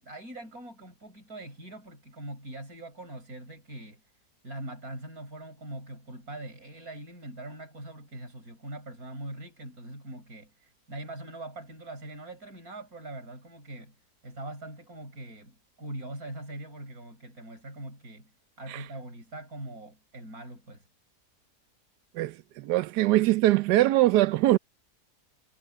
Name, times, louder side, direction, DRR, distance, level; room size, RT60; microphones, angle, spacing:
voice 1, 0.0-4.0 4.4-13.9 14.2-18.3 18.6-20.8, right 1 dB, 60° right, 8.2 m, -42 dB
voice 2, 22.2-24.6, right 16 dB, 80° right, 1.2 m, -22 dB
omnidirectional pair, 1.7 m